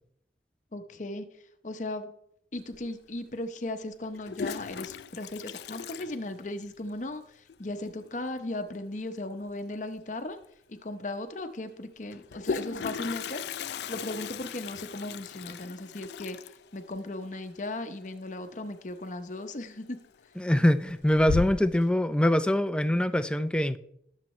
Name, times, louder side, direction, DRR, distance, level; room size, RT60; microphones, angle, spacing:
voice 1, 0.7-1.3 1.6-2.1 2.5-10.4 10.7-13.4 13.9-16.4 16.7-20.0, left 2 dB, 45° left, 0.8 m, -37 dB
Toilet flush, 2.7-2.8 4.0-6.9 7.1-7.2 7.5-7.6 7.9-8.3 10.0-10.1 10.4-10.5 12.1-18.8 19.0-19.5 19.9-20.4 20.8-21.8, left 6 dB, 70° left, 0.4 m, -37 dB
voice 2, 20.4-23.8, left 1 dB, 5° left, 0.4 m, -24 dB
20.0 x 7.4 x 3.2 m
head